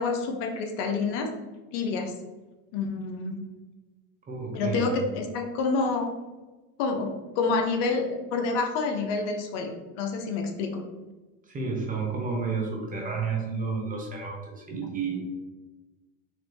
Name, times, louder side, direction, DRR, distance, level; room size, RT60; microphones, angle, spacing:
voice 1, 0.0-1.3 1.7-2.1 2.7-3.4 4.5-6.1 6.8-10.8, left 4 dB, 60° left, 3 dB, 0.8 m, -28 dB
voice 2, 4.3-5.0 11.5-15.2, right 5 dB, 20° right, 0 dB, 0.9 m, -31 dB
4.0 x 3.0 x 3.1 m, 1.2 s
supercardioid pair, 115°, 40 cm